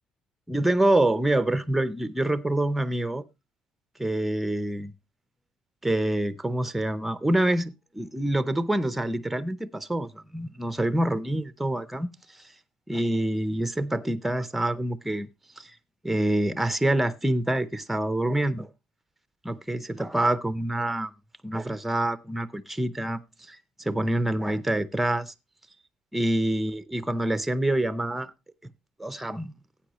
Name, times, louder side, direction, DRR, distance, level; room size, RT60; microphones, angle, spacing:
voice 1, 0.5-3.2 4.0-4.9 5.8-12.1 12.9-15.3 15.6-15.7 16.0-18.7 19.4-21.1 21.4-23.2 23.5-23.6 23.8-25.3 26.1-28.3 28.6-28.7 29.0-29.5, right 1 dB, 5° right, 0.6 m, -26 dB
15.0 x 8.7 x 3.0 m
cardioid pair, 145°, 2 cm